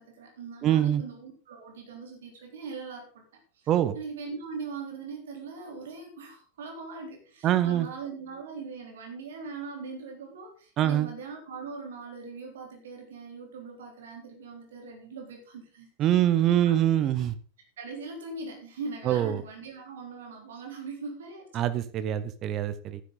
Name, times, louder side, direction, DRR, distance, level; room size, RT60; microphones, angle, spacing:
voice 1, 0.0-3.2 3.5-3.7 3.9-15.9 16.2-16.7 17.8-21.5, right 4 dB, 60° right, 2 dB, 3.6 m, -41 dB
voice 2, 0.6-1.0 3.7-3.9 7.4-7.9 10.8-11.1 16.0-17.4 19.0-19.4 21.5-23.0, right 11 dB, 35° right, 13 dB, 1.0 m, -24 dB
12.0 x 11.0 x 4.0 m, 0.39 s
figure-of-eight pair, 90°, 0 cm